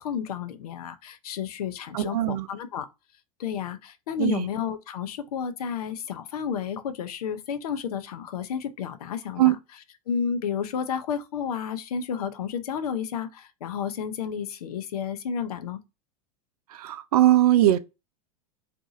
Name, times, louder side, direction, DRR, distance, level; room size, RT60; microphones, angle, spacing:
voice 1, 0.0-2.9 3.4-9.6 10.1-15.8, left 7 dB, 80° left, 0.6 m, -31 dB
voice 2, 1.9-2.5 4.2-4.5 9.4-9.6 16.7-17.8, right 14 dB, 80° right, 0.4 m, -20 dB
2.6 x 2.4 x 3.9 m
hypercardioid pair, 100°, 19 cm